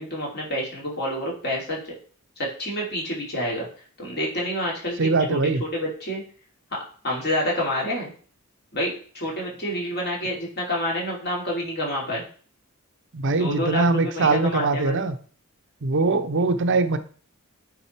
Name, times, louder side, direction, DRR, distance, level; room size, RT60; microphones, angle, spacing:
voice 1, 0.0-1.8 2.4-3.7 4.0-5.4 5.7-6.2 6.7-6.8 7.0-8.1 8.7-12.2 13.4-15.0, equal, 50° left, -3 dB, 2.9 m, -28 dB
voice 2, 5.0-5.6 13.1-15.2 15.8-17.0, right 3 dB, 60° right, 9 dB, 0.7 m, -22 dB
8.9 x 3.8 x 4.5 m, 0.42 s
head